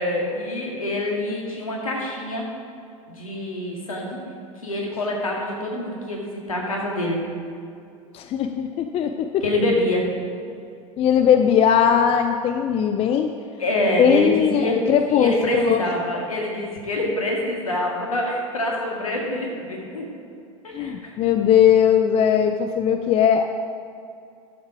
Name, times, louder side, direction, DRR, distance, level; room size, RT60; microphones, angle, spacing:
voice 1, 0.0-2.5 3.1-4.2 4.6-7.2 9.4-10.1 13.6-14.8 15.1-20.1 20.6-21.1, left 1 dB, 85° left, -1 dB, 2.0 m, -26 dB
voice 2, 8.1-9.4 11.0-13.3 14.0-15.8 20.7-23.5, left 8 dB, 35° left, 7 dB, 0.5 m, -19 dB
11.5 x 7.2 x 4.9 m, 2.4 s
figure-of-eight pair, 85°, 17 cm